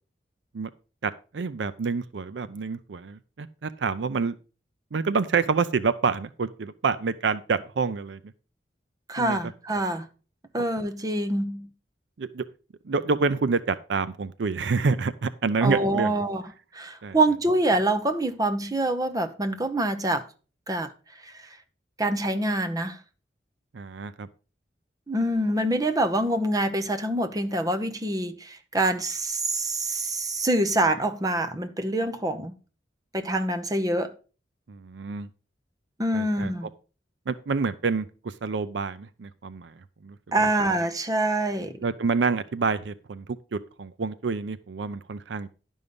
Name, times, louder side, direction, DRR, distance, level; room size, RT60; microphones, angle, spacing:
voice 1, 1.0-4.4 4.9-8.2 9.2-9.4 12.2-12.4 12.8-16.1 17.0-17.2 23.7-24.3 34.7-35.3 36.1-36.5 37.3-40.5 41.8-45.5, right 4 dB, 70° right, 0.5 m, -28 dB
voice 2, 9.1-10.1 10.5-11.7 15.6-16.4 16.7-20.2 20.7-20.9 21.2-21.5 22.0-23.0 25.1-32.5 33.1-34.1 36.0-36.7 40.3-41.8, right 1 dB, 20° right, 0.9 m, -25 dB
11.0 x 5.4 x 5.1 m
head